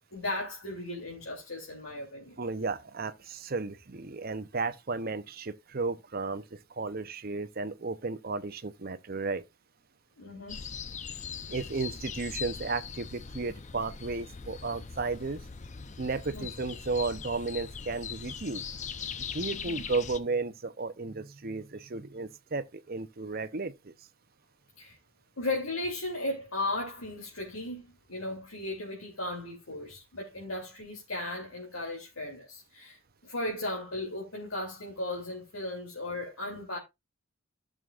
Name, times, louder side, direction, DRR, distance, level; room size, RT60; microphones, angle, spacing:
voice 1, 0.1-2.4 10.2-10.6 16.3-16.5 19.5-19.8 24.8-25.0 25.4-36.8, left 2 dB, 80° left, 2.9 m, -36 dB
voice 2, 2.4-9.4 11.5-15.4 16.0-18.6 19.3-23.9, right 3 dB, 45° right, 0.7 m, -34 dB
sound 1, 10.5-20.2, left 6 dB, 35° left, 0.6 m, -40 dB
14.5 x 6.4 x 2.4 m
head